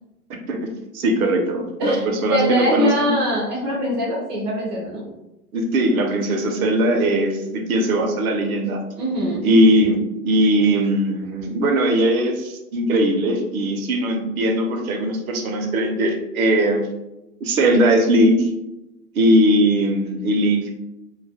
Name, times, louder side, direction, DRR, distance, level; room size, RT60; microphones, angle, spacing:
voice 1, 0.9-3.1 5.5-8.8 9.4-16.9 17.4-18.5 19.1-20.7, right 1 dB, 65° right, 3 dB, 0.6 m, -19 dB
voice 2, 1.8-5.0 9.0-9.4, equal, 20° right, -5 dB, 0.4 m, -22 dB
2.3 x 2.1 x 2.7 m, 0.96 s
hypercardioid pair, 125°, 47 cm